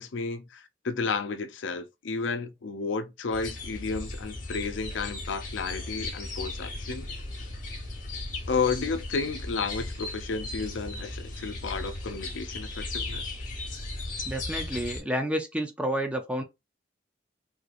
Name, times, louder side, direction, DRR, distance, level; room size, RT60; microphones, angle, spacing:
voice 1, 0.0-7.1 8.5-13.3, left 4 dB, 85° left, 0.5 m, -32 dB
sound 1, 3.3-15.0, left 2 dB, 45° left, 1.3 m, -36 dB
voice 2, 14.3-16.4, right 1 dB, 5° right, 0.5 m, -30 dB
3.8 x 3.1 x 2.4 m
head